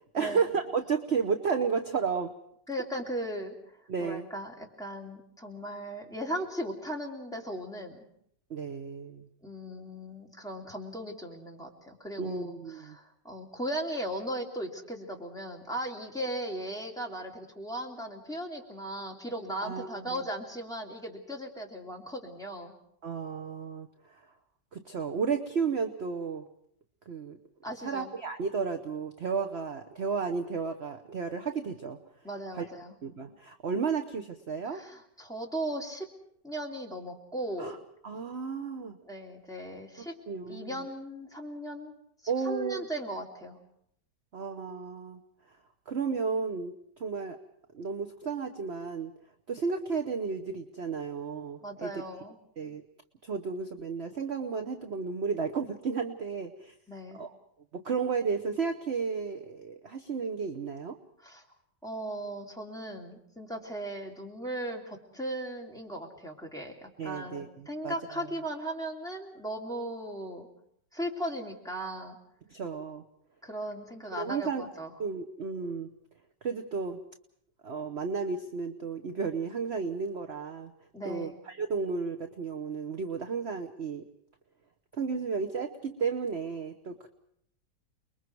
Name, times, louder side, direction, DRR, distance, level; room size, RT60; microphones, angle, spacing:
voice 1, 0.1-2.3 3.9-4.3 8.5-9.3 12.2-13.0 19.6-20.2 23.0-24.2 24.7-26.5 27.1-27.4 27.8-32.0 32.5-32.7 33.0-34.8 37.6-37.8 38.0-39.0 40.3-40.8 42.3-42.9 44.3-45.2 45.9-47.4 47.7-49.1 49.5-52.0 52.6-52.8 53.2-56.7 57.1-57.3 57.7-61.0 67.0-67.5 67.8-68.2 72.5-73.0 74.1-74.7 75.0-75.9 76.4-77.0 77.6-80.7 81.0-84.1 84.9-87.1, right 5 dB, 45° right, 7 dB, 1.1 m, -33 dB
voice 2, 2.7-8.0 9.4-22.7 27.6-28.1 32.2-33.0 34.7-36.1 36.4-37.7 39.0-40.1 40.5-41.9 42.4-43.6 51.6-52.4 56.9-57.2 61.2-61.4 61.8-70.5 70.9-72.2 73.4-74.9 80.9-81.3, right 1 dB, ahead, -1 dB, 2.9 m, -37 dB
29.5 x 21.5 x 4.7 m, 0.69 s
omnidirectional pair, 1.9 m